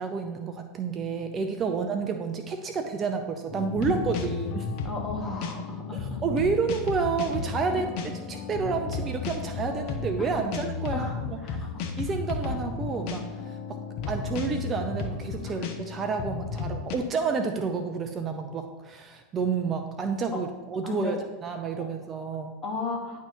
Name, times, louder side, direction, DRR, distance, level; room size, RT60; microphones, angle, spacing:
voice 1, 0.0-4.7 5.9-11.4 12.0-13.8 14.1-22.5, right 5 dB, 30° right, 6 dB, 0.7 m, -30 dB
sound 1, 3.5-17.0, left 4 dB, 55° left, 1.0 m, -33 dB
voice 2, 4.8-6.2 7.7-7.8 10.2-10.3 10.9-11.7 12.4-12.6 15.4-15.5 20.3-20.4 20.8-21.2 21.8-21.9 22.6-23.2, left 4 dB, 25° left, 0 dB, 2.0 m, -35 dB
10.5 x 3.5 x 4.6 m, 1.3 s
hypercardioid pair, 90°, 0 cm